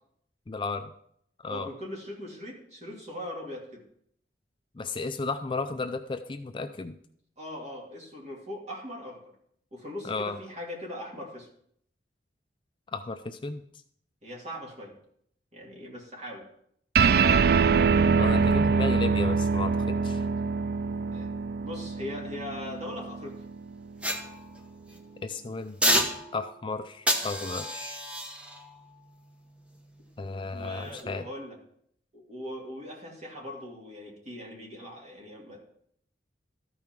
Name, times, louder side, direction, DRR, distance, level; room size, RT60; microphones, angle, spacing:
voice 1, 0.5-0.9 1.4-1.7 4.8-7.0 10.0-10.4 12.9-13.6 18.2-20.2 25.2-25.8 26.3-28.0 30.2-31.3, left 3 dB, 30° left, 8 dB, 0.4 m, -34 dB
voice 2, 1.5-3.8 7.4-9.2 9.7-11.5 14.2-14.9 15.5-16.5 21.1-21.3 21.6-23.4 30.5-31.6 32.1-35.6, left 1 dB, 40° right, -2 dB, 2.5 m, -40 dB
sound 1, 16.9-23.7, right 5 dB, 60° right, 0.3 m, -24 dB
sound 2, 24.0-25.0 25.8-26.6 27.1-30.3 30.8-31.0, equal, 5° right, 0.9 m, -31 dB
13.5 x 5.5 x 4.5 m, 0.69 s
head